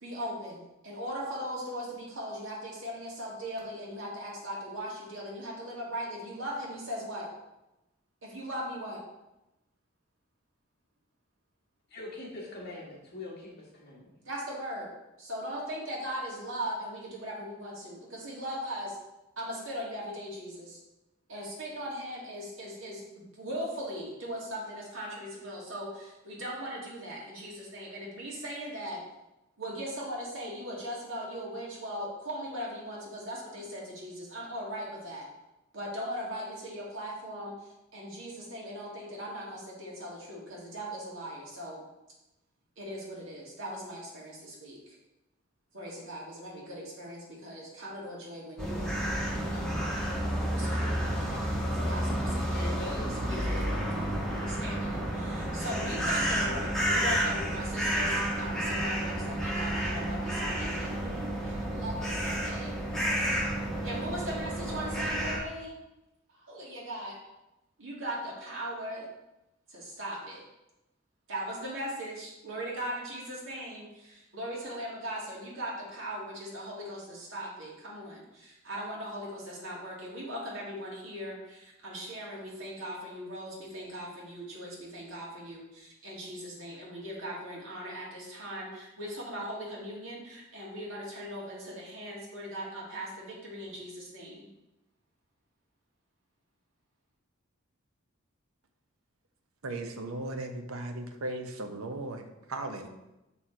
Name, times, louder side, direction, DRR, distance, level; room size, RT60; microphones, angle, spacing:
voice 1, 0.0-7.3 8.2-9.0 14.3-14.9 15.2-19.0 19.4-20.8 21.3-29.0 29.6-35.3 35.7-41.8 42.8-45.0 45.7-49.1 49.4-49.7 50.5-51.4 51.7-52.5 53.2-54.1 54.4-62.8 63.8-65.7 66.3-67.2 67.8-69.1 69.7-70.4 71.3-94.5, equal, 70° right, 2.1 m, -39 dB
voice 2, 11.9-14.2 52.5-53.3, left 2 dB, 50° left, 1.7 m, -42 dB
sound 1, 48.6-65.4, equal, 5° left, 1.2 m, -30 dB
voice 3, 99.6-102.9, right 2 dB, 90° right, 0.8 m, -37 dB
6.1 x 4.3 x 4.4 m
head